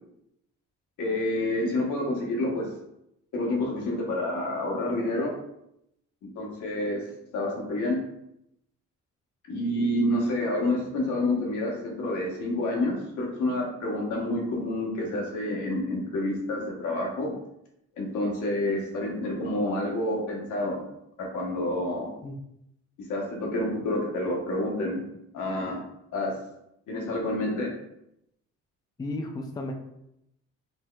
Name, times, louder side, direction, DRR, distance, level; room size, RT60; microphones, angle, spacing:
voice 1, 1.0-2.7 3.3-5.3 6.4-7.0 7.3-8.0 9.5-17.3 18.0-20.8 21.2-22.1 23.0-25.0 25.3-25.8 26.1-26.3 26.9-27.7, left 1 dB, 80° left, -1 dB, 1.0 m, -28 dB
voice 2, 29.0-29.7, left 2 dB, 15° left, 3 dB, 0.4 m, -33 dB
4.3 x 2.8 x 2.2 m, 0.79 s
cardioid pair, 90°, 30 cm